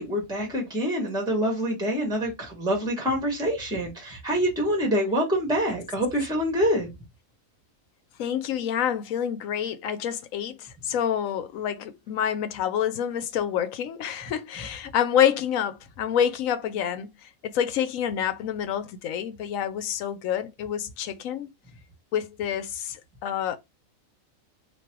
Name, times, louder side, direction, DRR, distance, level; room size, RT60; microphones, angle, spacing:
voice 1, 0.0-6.9, equal, 5° right, 1.2 m, -26 dB
voice 2, 8.2-17.1 17.4-21.5 22.1-23.6, left 9 dB, 75° left, 1.0 m, -27 dB
3.2 x 2.5 x 4.4 m
omnidirectional pair, 1.5 m